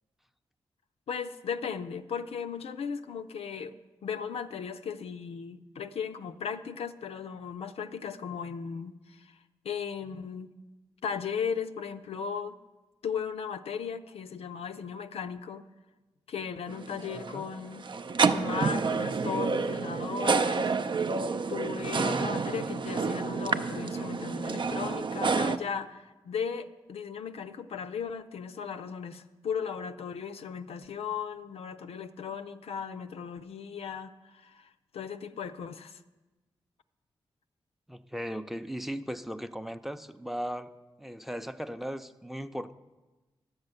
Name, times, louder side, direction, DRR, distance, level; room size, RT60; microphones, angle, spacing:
voice 1, 1.1-3.7 4.0-9.4 9.6-10.5 11.0-12.6 13.0-15.7 16.3-17.9 18.3-20.7 21.5-36.0, left 6 dB, 75° left, 0.5 m, -36 dB
sound 1, 16.7-25.6, right 4 dB, 50° right, 0.5 m, -29 dB
voice 2, 17.1-17.5 21.9-22.3 37.9-40.7 41.0-42.7, equal, ahead, 0.6 m, -37 dB
10.5 x 7.1 x 6.6 m
supercardioid pair, 45°, 10 cm